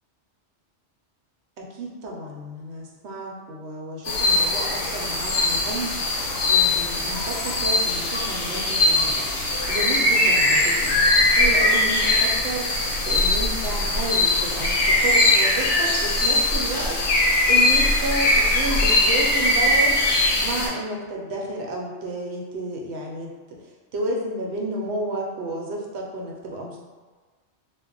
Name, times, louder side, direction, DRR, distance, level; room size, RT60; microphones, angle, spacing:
voice 1, 1.6-5.9 6.5-9.2 9.7-12.7 13.1-17.0 17.5-19.9 20.4-23.6 23.9-26.8, right 1 dB, 75° right, -1 dB, 0.9 m, -31 dB
sound 1, 4.0-20.7, left 2 dB, 65° left, 0.9 m, -21 dB
2.2 x 2.0 x 3.7 m, 1.4 s
omnidirectional pair, 1.2 m